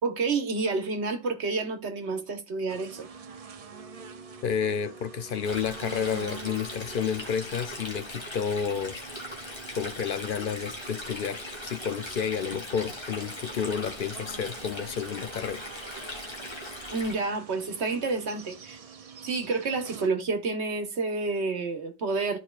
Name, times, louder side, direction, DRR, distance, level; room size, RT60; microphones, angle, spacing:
voice 1, 0.0-3.1 16.9-18.8 19.2-22.4, right 3 dB, 85° right, 1.4 m, -29 dB
sound 1, 2.7-20.1, right 6 dB, 45° right, 0.6 m, -47 dB
Wind instrument woodwind instrument, 3.7-8.0, right 3 dB, 20° right, 1.9 m, -52 dB
voice 2, 4.4-9.0 9.7-15.7, left 7 dB, 60° left, 0.7 m, -31 dB
Stream, 5.4-17.1, left 1 dB, 25° left, 1.7 m, -40 dB
13.5 x 4.6 x 2.4 m
omnidirectional pair, 1.1 m